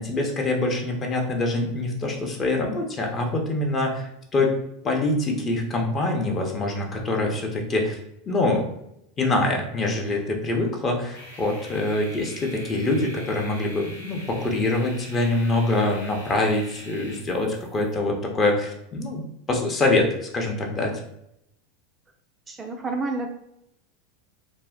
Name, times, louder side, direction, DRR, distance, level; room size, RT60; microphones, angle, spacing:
voice 1, 0.0-4.6 4.8-8.0 8.3-8.7 9.2-20.1 20.3-20.9, left 2 dB, 30° left, 1 dB, 0.7 m, -24 dB
sound 1, 11.1-17.9, equal, 80° left, 1.2 m, -43 dB
voice 2, 22.5-23.3, right 3 dB, 20° right, 3 dB, 0.3 m, -29 dB
2.5 x 2.0 x 3.7 m, 0.79 s
figure-of-eight pair, 85°, 0 cm